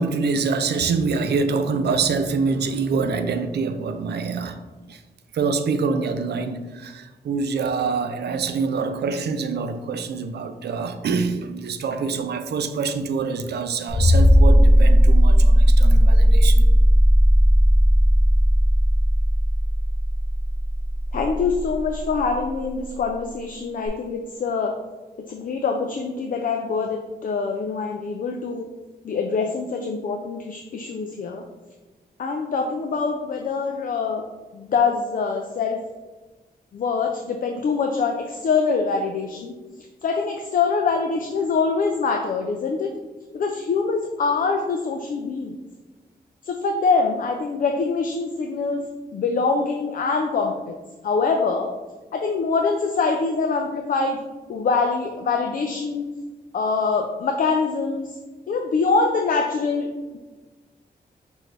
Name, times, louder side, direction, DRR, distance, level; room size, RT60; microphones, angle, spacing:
voice 1, 0.0-4.6 4.9-5.0 5.3-16.6, right 4 dB, 90° right, 8 dB, 0.4 m, -25 dB
sound 1, 13.9-22.3 23.9-24.0, equal, 20° left, 0.7 m, -16 dB
voice 2, 21.1-24.7 25.3-28.7 29.0-31.4 32.2-34.2 34.5-35.8 36.7-39.6 40.0-42.9 43.3-45.5 46.4-50.8 51.0-51.7 52.1-54.2 54.5-56.0 56.5-58.2 58.5-60.2, left 4 dB, 55° left, 3 dB, 0.4 m, -24 dB
6.0 x 2.6 x 3.2 m, 1.2 s
wide cardioid pair, 120°, 17 cm